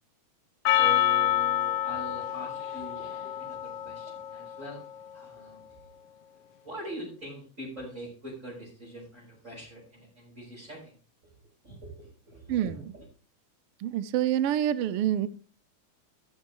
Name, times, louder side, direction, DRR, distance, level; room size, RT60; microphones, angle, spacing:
Percussion, 0.6-5.2, left 13 dB, 65° left, 1.5 m, -28 dB
voice 1, 0.6-3.0 3.4-4.8 5.1-5.6 6.6-10.9 11.6-13.0, right 1 dB, 25° right, -8 dB, 6.0 m, -43 dB
voice 2, 12.5-12.8 13.8-15.3, right 11 dB, 80° right, 11 dB, 1.3 m, -27 dB
14.5 x 6.5 x 4.6 m, 0.37 s
omnidirectional pair, 3.5 m